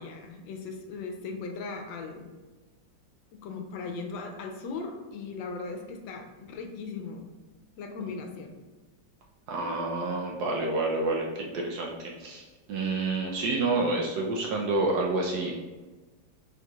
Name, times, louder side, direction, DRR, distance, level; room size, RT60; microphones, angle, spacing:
voice 1, 0.0-2.3 3.3-7.3 7.8-8.6, left 4 dB, 85° left, 4 dB, 1.3 m, -38 dB
voice 2, 9.5-15.5, right 2 dB, 70° right, -1 dB, 1.0 m, -29 dB
4.3 x 3.8 x 2.3 m, 1.2 s
omnidirectional pair, 2.1 m